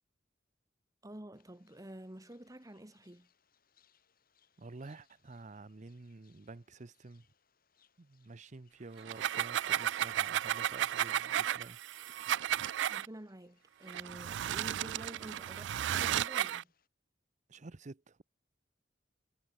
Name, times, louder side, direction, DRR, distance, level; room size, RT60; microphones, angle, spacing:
voice 1, 1.0-3.3 12.9-16.7, right 1 dB, 20° right, 1.6 m, -50 dB
sound 1, 1.3-16.9, left 8 dB, 55° left, 4.9 m, -74 dB
voice 2, 4.6-7.3 8.0-11.8 17.5-18.2, right 3 dB, 40° right, 0.7 m, -50 dB
sound 2, 9.0-13.1 13.9-16.6, right 11 dB, 75° right, 0.3 m, -33 dB
head